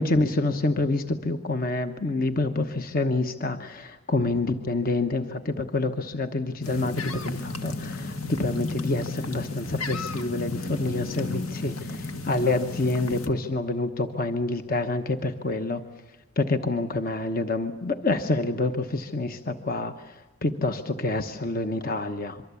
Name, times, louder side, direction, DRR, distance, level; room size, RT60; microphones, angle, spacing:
voice 1, 0.0-15.8 16.4-22.4, left 2 dB, 45° left, 8 dB, 1.1 m, -27 dB
sound 1, 6.6-13.3, left 3 dB, 90° left, 1.9 m, -33 dB
25.5 x 24.0 x 8.4 m, 1.1 s
head